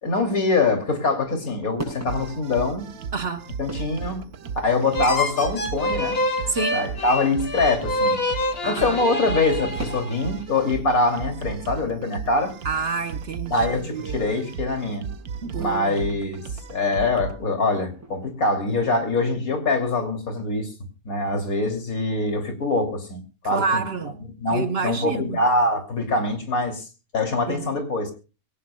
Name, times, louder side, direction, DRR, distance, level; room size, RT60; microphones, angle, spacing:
voice 1, 0.0-2.9 3.6-4.2 4.6-6.2 6.7-8.2 8.6-12.5 13.5-15.1 15.6-16.4 16.7-20.7 21.0-23.9 24.4-26.8 27.1-28.1, left 3 dB, 75° left, 3.2 m, -24 dB
sound 1, 1.2-19.1, right 1 dB, 10° right, 6.7 m, -45 dB
sound 2, 2.1-17.4, right 6 dB, 90° right, 1.4 m, -36 dB
voice 2, 3.1-3.5 6.5-6.8 8.6-9.0 12.6-13.7 13.9-14.5 15.4-16.0 23.5-24.2 24.5-25.4 27.5-27.6, right 4 dB, 50° right, 1.0 m, -28 dB
sound 3, 4.9-10.4, left 1 dB, 45° left, 2.3 m, -27 dB
23.5 x 17.5 x 2.2 m
omnidirectional pair, 1.5 m